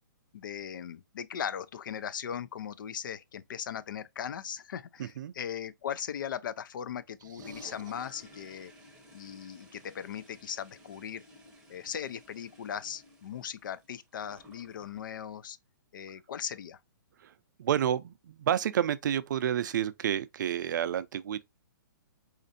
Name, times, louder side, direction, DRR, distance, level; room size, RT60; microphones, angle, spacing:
voice 1, 0.3-8.7 9.1-11.2 11.7-15.6 15.9-16.8, left 8 dB, 70° left, 0.4 m, -38 dB
voice 2, 5.0-5.3 7.5-7.7 17.2-17.3 17.6-21.5, right 10 dB, 65° right, 0.4 m, -30 dB
Toilet flush, 7.2-15.1, left 1 dB, 5° right, 0.8 m, -54 dB
4.2 x 2.5 x 2.5 m
hypercardioid pair, 155°, 11 cm